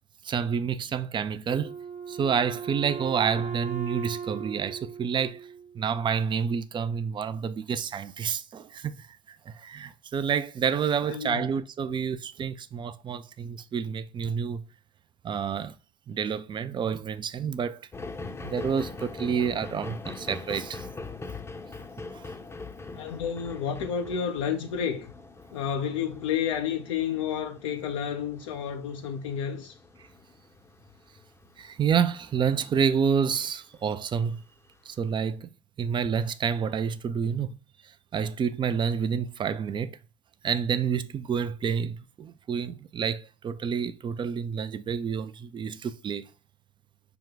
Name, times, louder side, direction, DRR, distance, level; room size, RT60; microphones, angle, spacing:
voice 1, 0.2-1.7 2.1-5.4 5.7-14.6 15.2-15.7 16.1-17.8 18.4-20.9 22.1-22.3 31.6-34.4 34.9-35.5 35.8-37.6 38.1-40.0 40.4-46.3, right 7 dB, 30° right, 0.5 m, -29 dB
Wind instrument woodwind instrument, 1.5-6.0, right 6 dB, 50° right, 1.0 m, -38 dB
voice 2, 11.1-11.5 22.9-25.1 25.5-29.8, left 8 dB, 80° left, 0.5 m, -30 dB
sound 1, 17.9-33.5 34.1-34.2, left 3 dB, 15° left, 0.7 m, -42 dB
5.8 x 2.2 x 3.9 m
hypercardioid pair, 70°, 16 cm